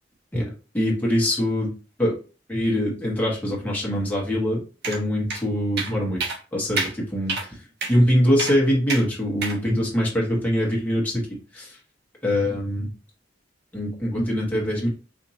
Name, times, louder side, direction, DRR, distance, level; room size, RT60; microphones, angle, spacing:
voice 1, 0.3-1.7 2.0-2.2 2.5-6.2 6.5-7.6 7.9-11.3 11.5-11.8 12.2-12.9 13.7-14.9, equal, 10° left, -4 dB, 1.5 m, -23 dB
sound 1, 4.8-5.0 5.3-5.4 5.8-5.9 6.2-6.4 6.8-6.9 7.3-7.5 7.8-8.0 8.4-8.6 8.9-9.0 9.4-9.6, right 3 dB, 60° right, 0.8 m, -27 dB
4.4 x 2.8 x 2.7 m, 0.34 s
head